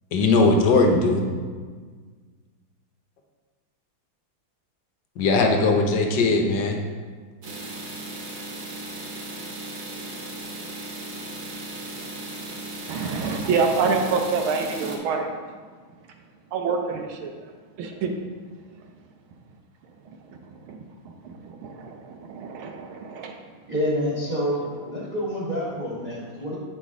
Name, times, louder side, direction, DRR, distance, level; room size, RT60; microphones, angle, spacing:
voice 1, 0.1-1.2 5.2-6.8, left 3 dB, 65° left, 3 dB, 1.4 m, -19 dB
sound 1, 7.4-15.0, right 2 dB, 50° right, 1.3 m, -36 dB
voice 2, 12.9-15.3 16.5-17.3 17.8-18.1 20.7-20.8 21.2-23.3, right 5 dB, 80° right, 3 dB, 1.5 m, -26 dB
voice 3, 23.7-26.6, equal, 25° right, -7 dB, 1.3 m, -27 dB
8.2 x 5.2 x 3.6 m, 1.5 s
omnidirectional pair, 2.2 m